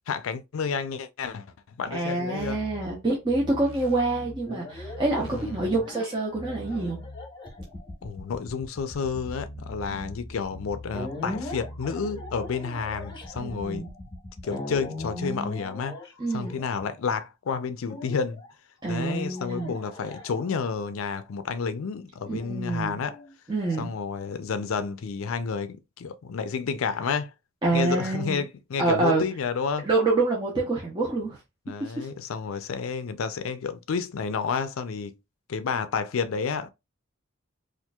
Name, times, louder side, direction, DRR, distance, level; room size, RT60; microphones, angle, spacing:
voice 1, 0.1-1.5 1.8-2.6 5.3-5.8 8.0-13.9 14.4-16.0 16.3-18.4 18.9-23.2 23.8-27.3 27.7-29.9 31.7-35.1 35.5-36.7, left 5 dB, 80° left, 0.4 m, -30 dB
voice 2, 1.9-7.0 9.9-10.1 13.4-13.9 16.2-16.6 18.8-19.7 22.3-23.0 23.5-23.9 27.6-28.4 28.8-29.2 29.8-31.4 31.8-32.1, right 2 dB, 20° right, 0.8 m, -27 dB
sound 1, 2.4-5.8 6.3-7.3 8.9-13.4, equal, 80° right, 0.9 m, -42 dB
sound 2, 4.5-17.1 17.9-18.5 19.3-20.8 22.4-23.8, left 2 dB, 25° left, 0.9 m, -40 dB
4.3 x 2.5 x 2.3 m
head